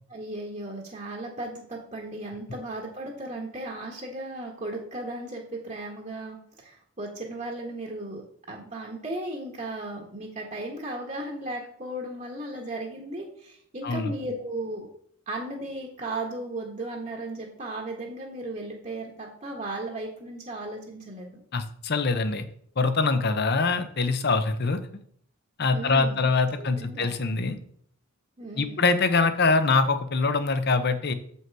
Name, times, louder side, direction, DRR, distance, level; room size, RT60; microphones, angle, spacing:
voice 1, 0.1-8.2 8.5-14.9 15.3-21.4 25.7-26.3 26.6-27.1 28.4-28.9, right 1 dB, 35° right, -2 dB, 1.3 m, -36 dB
voice 2, 21.5-22.5 22.8-24.8 25.6-27.6 28.5-31.1, left 4 dB, 45° left, 10 dB, 0.7 m, -24 dB
7.6 x 5.5 x 4.7 m, 0.62 s
head